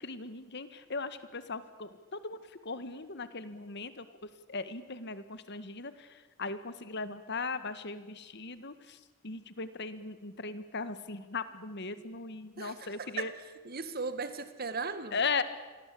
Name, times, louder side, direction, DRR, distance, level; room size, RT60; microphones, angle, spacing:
voice 1, 0.0-4.1 4.5-9.0 9.2-13.3 15.1-15.4, left 4 dB, 55° left, 13 dB, 1.7 m, -38 dB
voice 2, 12.6-13.3 13.6-15.2, right 4 dB, 45° right, 11 dB, 2.0 m, -37 dB
29.0 x 23.0 x 8.6 m, 1.3 s
head